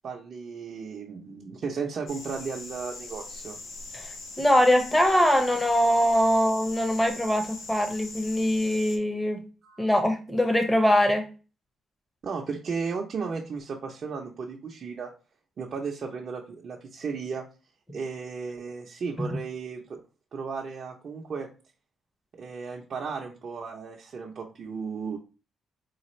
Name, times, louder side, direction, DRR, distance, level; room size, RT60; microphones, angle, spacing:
voice 1, 0.0-3.6 9.6-9.9 12.2-15.1 15.6-17.4 17.9-20.0 20.3-21.5 22.3-25.2, right 5 dB, 50° right, -1 dB, 0.5 m, -35 dB
sound 1, 2.1-9.0, left 3 dB, 70° left, 0.9 m, -41 dB
voice 2, 4.4-9.4 9.8-11.2, equal, 10° left, 6 dB, 0.8 m, -22 dB
4.0 x 2.4 x 3.0 m, 0.34 s
cardioid pair, 90°, 0 cm